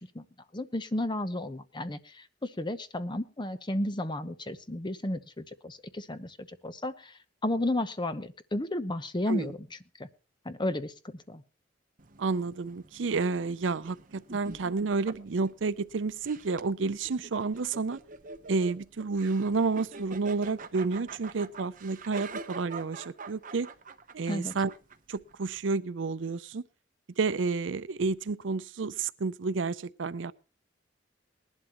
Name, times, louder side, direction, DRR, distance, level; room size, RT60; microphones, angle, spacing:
voice 1, 0.5-7.2 7.4-9.6 10.0-10.1 10.4-11.4 24.3-24.5, left 1 dB, 25° left, 0.9 m, -33 dB
sound 1, 12.0-25.6, right 3 dB, 45° right, 1.0 m, -46 dB
voice 2, 12.2-18.0 18.5-23.7 24.1-24.7 25.1-26.6 27.2-30.3, right 4 dB, 80° right, 0.5 m, -30 dB
20.0 x 11.5 x 3.0 m
head